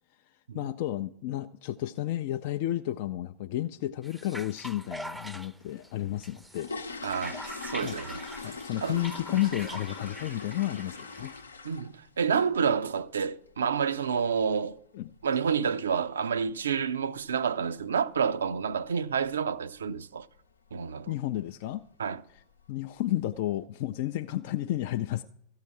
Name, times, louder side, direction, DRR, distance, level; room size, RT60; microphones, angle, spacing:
voice 1, 0.5-6.7 7.8-8.0 8.4-11.3 14.9-15.1 21.1-21.9 22.3-22.4 22.7-25.2, left 14 dB, 50° left, 0.4 m, -32 dB
sound 1, 4.0-11.4, right 1 dB, 5° right, 0.6 m, -44 dB
sound 2, 6.2-12.1 12.4-12.7 13.0-13.1 13.5-13.6 14.0-14.2 14.5-14.6 15.2-15.3 15.5-15.7 16.2-16.5 16.8-16.9 17.3-17.5 17.8-17.9 18.3-18.4 19.0-19.3 19.7-20.0 20.4-20.5 20.9-21.0 21.7-21.9 22.3-22.8 23.2-23.3, left 4 dB, 80° left, 0.8 m, -41 dB
voice 2, 7.0-8.2 8.8-9.0 11.6-14.8 15.2-20.3 20.7-21.1 22.0-22.2, right 6 dB, 70° right, 0.5 m, -29 dB
14.5 x 5.7 x 8.5 m
figure-of-eight pair, 90°, 0 cm